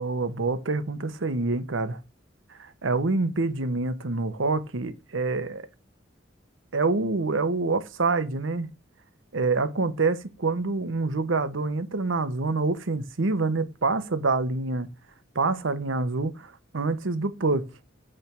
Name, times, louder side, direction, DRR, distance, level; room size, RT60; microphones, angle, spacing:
voice 1, 0.0-2.0 2.6-5.7 6.7-8.7 9.3-14.9 15.3-17.7, right 3 dB, 85° right, 0.9 m, -26 dB
8.7 x 3.4 x 5.9 m
head